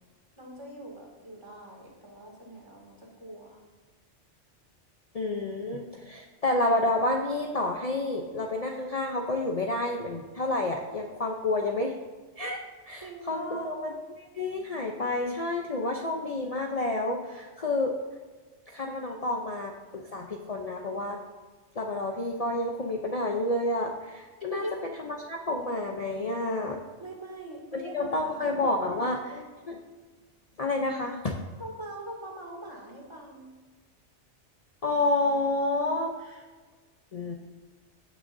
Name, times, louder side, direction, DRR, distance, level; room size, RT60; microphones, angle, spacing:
voice 1, 0.4-3.6 13.0-13.8 24.5-24.8 27.0-28.0 28.2-29.4 31.6-33.5, right 1 dB, 25° right, -2 dB, 2.4 m, -42 dB
voice 2, 5.1-11.9 12.4-12.6 12.9-13.9 14.2-17.9 18.7-21.2 21.8-26.8 27.7-29.2 29.7-29.8 30.6-31.4 34.8-36.4 37.1-37.3, left 2 dB, 35° left, 1 dB, 0.8 m, -29 dB
15.5 x 6.4 x 2.7 m, 1.4 s
omnidirectional pair, 1.2 m